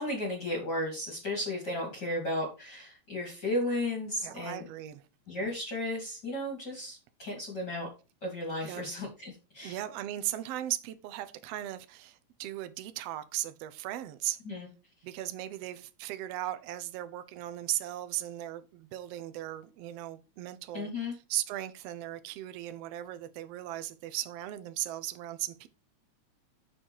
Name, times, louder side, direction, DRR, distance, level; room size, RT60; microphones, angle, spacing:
voice 1, 0.0-4.7 5.3-7.9 8.2-9.8 14.4-14.7 20.7-21.1, left 1 dB, 35° left, 3.1 m, -34 dB
voice 2, 4.2-5.0 8.6-8.8 9.6-14.4 15.0-25.7, right 14 dB, 70° right, 1.6 m, -37 dB
7.5 x 6.8 x 4.8 m
omnidirectional pair, 3.5 m